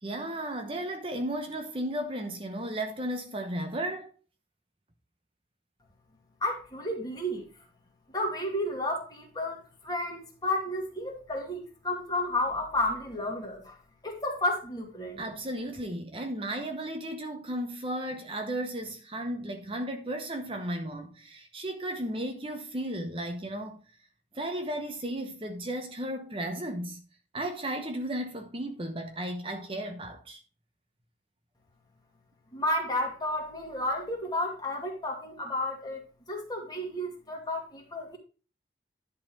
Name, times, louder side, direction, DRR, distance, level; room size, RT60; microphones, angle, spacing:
voice 1, 0.0-4.1 15.2-23.8 24.3-27.0 27.3-30.4, right 1 dB, 30° right, 0.9 m, -34 dB
voice 2, 6.4-7.5 8.1-13.8 14.0-15.2 32.5-36.0 36.3-38.2, left 1 dB, 20° left, 2.2 m, -32 dB
11.0 x 4.1 x 5.2 m
head